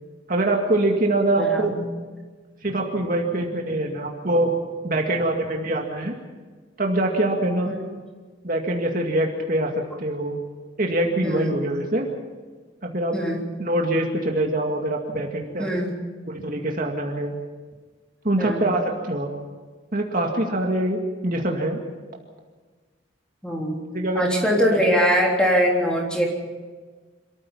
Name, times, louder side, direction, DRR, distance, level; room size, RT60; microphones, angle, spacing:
voice 1, 0.3-1.7 2.6-4.5 4.8-6.2 6.8-7.7 8.4-10.4 10.8-12.1 12.8-13.2 13.6-15.7 16.3-17.3 18.2-19.3 19.9-21.8 23.9-24.9, right 1 dB, 45° right, 1 dB, 2.2 m, -24 dB
voice 2, 1.4-1.8 7.7-7.8 11.2-11.5 13.1-13.4 15.6-16.0 18.4-18.7 23.4-23.8 24.2-26.3, equal, 5° left, -2 dB, 3.6 m, -22 dB
27.0 x 14.5 x 7.3 m, 1.4 s
head